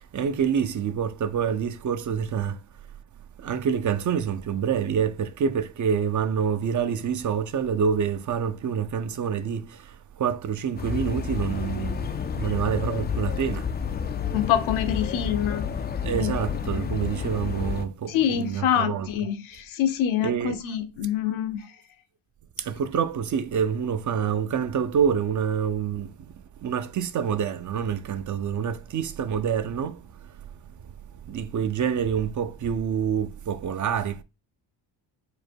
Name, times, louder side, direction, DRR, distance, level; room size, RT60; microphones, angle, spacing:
voice 1, 0.0-2.6 3.4-13.7 16.0-19.1 20.2-20.6 22.6-34.2, right 7 dB, 40° right, 0.6 m, -27 dB
sound 1, 10.8-17.8, left 6 dB, 25° left, 0.4 m, -30 dB
voice 2, 14.3-15.7 16.2-16.3 18.1-21.6, left 10 dB, 75° left, 0.9 m, -25 dB
4.9 x 2.1 x 4.4 m
supercardioid pair, 80°, 48 cm